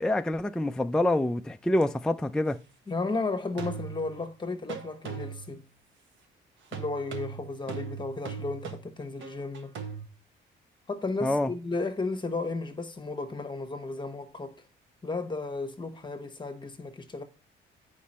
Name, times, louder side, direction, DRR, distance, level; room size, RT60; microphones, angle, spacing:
voice 1, 0.0-2.6 11.2-11.5, left 1 dB, 5° left, 0.4 m, -26 dB
sound 1, 1.8-1.9 3.6-4.3 4.7-5.6 6.7-10.1, right 6 dB, 75° right, 1.2 m, -39 dB
voice 2, 2.9-5.6 6.7-9.7 10.9-14.6 15.0-17.2, left 3 dB, 25° left, 1.1 m, -34 dB
8.4 x 5.1 x 4.2 m
cardioid pair, 90°, 20 cm